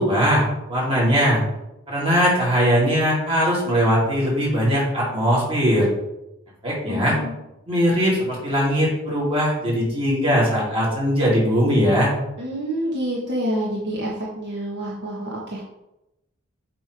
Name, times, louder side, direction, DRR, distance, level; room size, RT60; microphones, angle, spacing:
voice 1, 0.0-1.4 1.9-5.9 6.6-7.2 7.7-12.1, equal, 25° right, -5 dB, 2.6 m, -20 dB
voice 2, 6.9-7.3 12.4-15.6, equal, 55° right, -4 dB, 1.2 m, -27 dB
8.0 x 3.1 x 5.0 m, 0.90 s
head